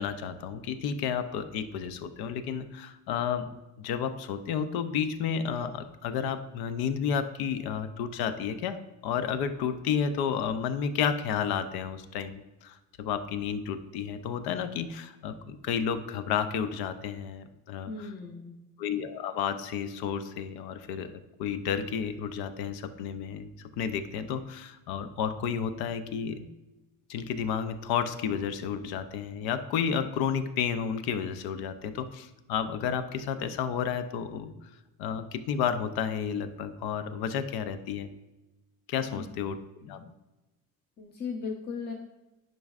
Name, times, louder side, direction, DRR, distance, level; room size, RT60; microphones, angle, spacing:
voice 1, 0.0-3.5 3.8-17.9 18.8-21.1 21.4-23.5 23.8-26.5 27.1-34.5 35.0-38.1 38.9-40.1, left 7 dB, 90° left, 11 dB, 0.6 m, -31 dB
voice 2, 17.9-18.6 39.1-39.2 41.0-41.9, left 5 dB, 30° left, 0 dB, 0.7 m, -37 dB
10.5 x 5.3 x 2.4 m, 1.1 s
cardioid pair, 130°, 36 cm